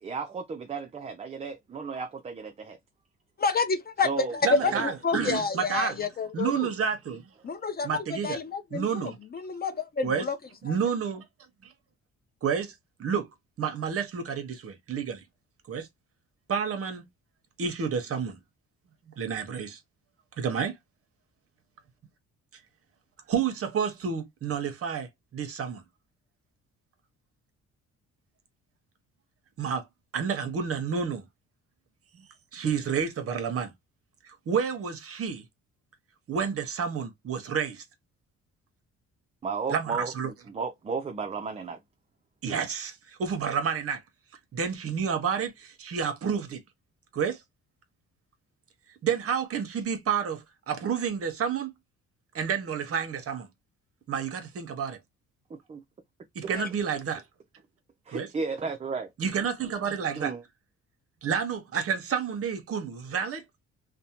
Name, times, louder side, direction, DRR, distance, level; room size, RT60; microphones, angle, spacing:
voice 1, 0.0-2.8 4.0-4.3 4.6-4.7 39.4-41.8 55.5-55.8 58.1-59.1 60.2-60.4, right 5 dB, 20° right, 0.3 m, -34 dB
voice 2, 3.4-4.1 4.6-6.7 7.4-10.4 10.7-10.8 56.6-56.7, left 5 dB, 30° left, 0.5 m, -30 dB
voice 3, 4.4-6.0 6.3-7.2 7.8-8.4 8.7-9.2 10.0-10.2 10.6-11.3 11.6-11.7 12.4-12.7 13.0-13.3 13.6-15.2 15.7-15.9 16.5-17.1 17.6-18.4 19.2-19.8 20.4-20.8 23.3-25.8 29.6-29.9 30.1-31.3 32.1-32.3 32.5-33.7 34.2-35.4 36.3-37.8 39.7-40.3 42.4-44.0 44.5-46.6 47.1-47.4 49.0-51.7 52.3-53.5 54.1-55.0 56.3-57.2 58.1-58.3 59.2-60.3 61.2-63.4, right 6 dB, 50° right, 0.8 m, -30 dB
2.5 x 2.0 x 2.8 m
cardioid pair, 90°, 30 cm